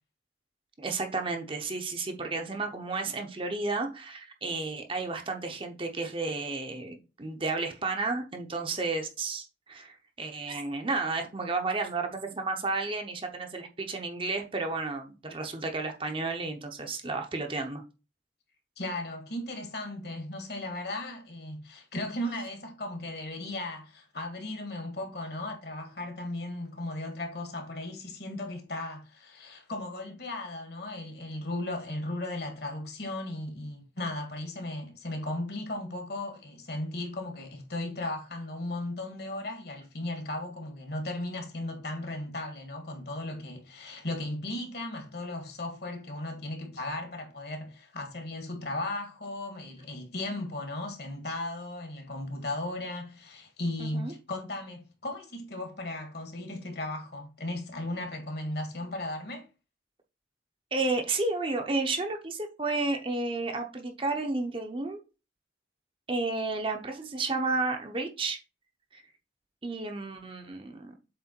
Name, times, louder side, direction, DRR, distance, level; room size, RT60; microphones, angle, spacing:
voice 1, 0.8-17.8 53.8-54.1 60.7-65.0 66.1-68.4 68.9-69.0 69.6-71.0, right 3 dB, 30° right, 0.8 m, -32 dB
voice 2, 18.8-59.5, left 1 dB, 60° left, 1.7 m, -36 dB
7.6 x 3.3 x 4.4 m
head